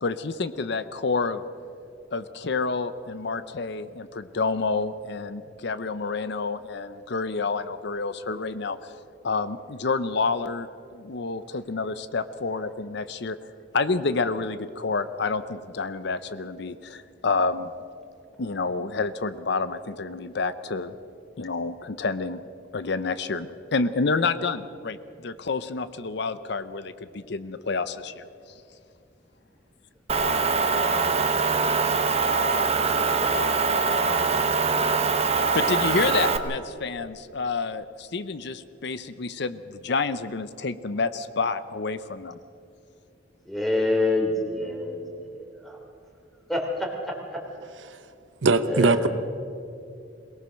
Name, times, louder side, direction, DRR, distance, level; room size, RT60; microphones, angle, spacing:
voice 1, 0.0-1.4 2.1-8.9 9.2-13.4 13.7-17.7 18.4-21.0 21.4-22.4 22.7-28.2 35.5-42.4, left 4 dB, 65° left, 13 dB, 0.7 m, -29 dB
Motor vehicle (road) / Engine, 30.1-36.4, right 4 dB, 35° right, 1.0 m, -23 dB
voice 2, 43.5-45.8 46.5-47.4 48.6-49.1, left 2 dB, ahead, 1 dB, 3.1 m, -27 dB
voice 3, 48.4-49.1, right 3 dB, 80° right, 11 dB, 0.9 m, -20 dB
23.0 x 18.5 x 6.4 m, 2.5 s
head